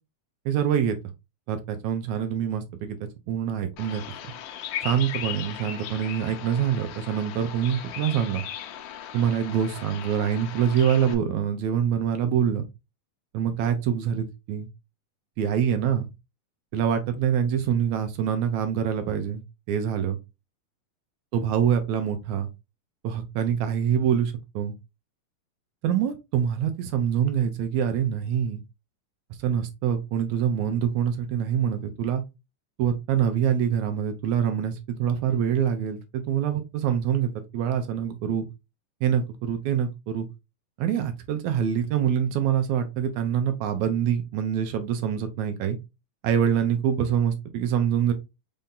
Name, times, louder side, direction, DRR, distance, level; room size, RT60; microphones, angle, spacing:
voice 1, 0.5-1.0 1.5-3.0 3.3-4.0 4.8-8.4 9.1-12.7 13.3-14.7 15.4-16.1 16.7-20.2 21.3-22.5 23.0-24.7 25.8-28.6 29.3-32.2 32.8-38.5 39.0-40.3 40.8-45.8 46.2-48.1, right 8 dB, 80° right, 1.7 m, -25 dB
Bird vocalization bird call bird song, 3.8-11.1, left 10 dB, 75° left, 2.2 m, -37 dB
5.5 x 2.7 x 3.6 m
omnidirectional pair, 3.8 m